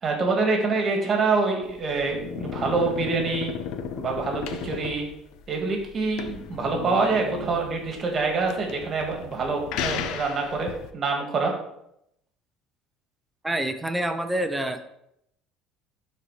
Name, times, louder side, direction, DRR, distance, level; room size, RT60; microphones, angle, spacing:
voice 1, 0.0-3.5 4.0-5.1 5.5-10.7 10.9-11.5, right 4 dB, 30° right, 1 dB, 1.8 m, -26 dB
sound 1, 1.6-10.9, left 7 dB, 70° left, 0.6 m, -35 dB
voice 2, 13.4-14.8, right 1 dB, 5° right, 7 dB, 0.7 m, -27 dB
11.0 x 4.3 x 3.3 m, 0.78 s
cardioid pair, 145°, 0 cm